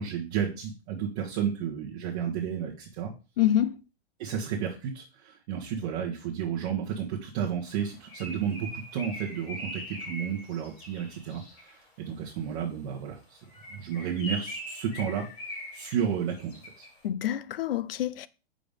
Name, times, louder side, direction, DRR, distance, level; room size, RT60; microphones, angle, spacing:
voice 1, 0.0-3.1 4.2-13.4 13.7-15.3 15.7-16.5 16.8-16.9, right 8 dB, 35° right, 1.1 m, -32 dB
voice 2, 3.4-3.8 17.0-18.3, left 12 dB, 65° left, 0.5 m, -26 dB
Bird, 7.7-11.8 13.4-16.9, equal, 20° left, 1.9 m, -41 dB
5.2 x 3.8 x 5.1 m
hypercardioid pair, 160°, 32 cm